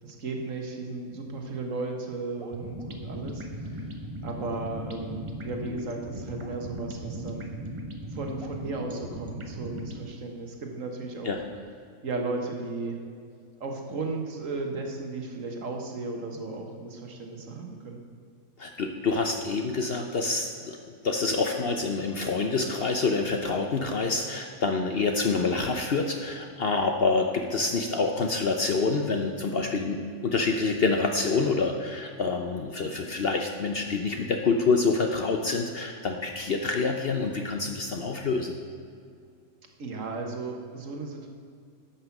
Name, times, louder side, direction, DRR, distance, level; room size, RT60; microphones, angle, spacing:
voice 1, 0.0-3.8 4.2-7.5 8.1-11.3 12.0-13.0 13.6-18.0 39.8-41.3, right 3 dB, 60° right, 2 dB, 1.6 m, -35 dB
sound 1, 2.4-10.0, right 1 dB, 25° right, 0.8 m, -38 dB
voice 2, 18.6-20.8 21.0-38.5, left 4 dB, 50° left, 4 dB, 0.8 m, -27 dB
11.0 x 5.9 x 7.1 m, 2.3 s
omnidirectional pair, 1.5 m